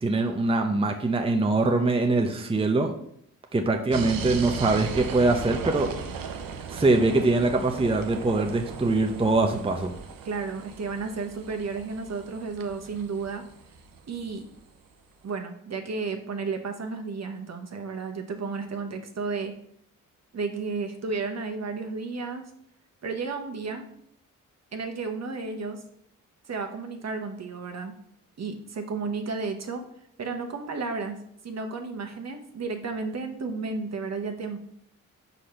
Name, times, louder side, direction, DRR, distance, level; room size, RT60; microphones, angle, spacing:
voice 1, 0.0-2.9 3.5-5.9 6.7-9.9, right 2 dB, 15° right, 4 dB, 0.7 m, -23 dB
sound 1, 3.9-14.6, right 6 dB, 75° right, 0.8 m, -37 dB
voice 2, 10.2-13.4 14.1-14.4 15.2-19.5 20.3-22.5 23.0-23.9 24.7-25.8 26.5-27.9 28.4-29.8 30.2-31.2 31.4-34.6, right 4 dB, 50° right, 5 dB, 1.1 m, -32 dB
4.9 x 4.1 x 5.7 m, 0.69 s
cardioid pair, 60°, 34 cm